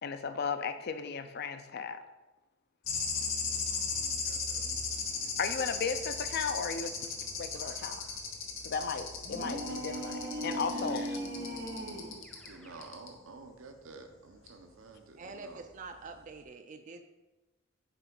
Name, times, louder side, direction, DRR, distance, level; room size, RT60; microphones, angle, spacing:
voice 1, 0.0-2.0 5.4-6.9 7.4-8.0 8.6-11.2, left 5 dB, 55° left, 9 dB, 0.5 m, -35 dB
sound 1, 2.8-12.5 12.8-13.1 14.5-14.6, left 5 dB, 85° left, 1.0 m, -37 dB
voice 2, 3.4-6.0 10.7-11.0 12.5-15.6, right 3 dB, 90° right, 6 dB, 0.7 m, -52 dB
sound 2, 9.2-12.2, right 1 dB, 65° right, 1.0 m, -38 dB
Keyboard (musical), 11.2-13.0, left 3 dB, 5° left, 0.6 m, -57 dB
voice 3, 15.2-17.0, right 4 dB, 40° right, 6 dB, 0.4 m, -46 dB
6.9 x 4.3 x 3.8 m, 1.1 s
head